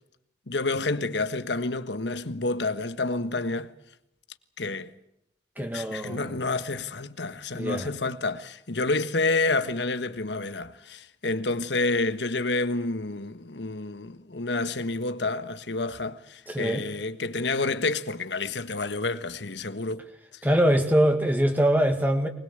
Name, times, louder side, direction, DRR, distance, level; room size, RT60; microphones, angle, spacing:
voice 1, 0.5-3.7 4.6-4.9 5.6-20.1, left 3 dB, 75° left, 1.4 m, -29 dB
voice 2, 5.6-6.4 7.5-7.9 16.5-16.8 20.4-22.3, right 1 dB, 10° right, 1.9 m, -23 dB
24.0 x 21.0 x 8.2 m
head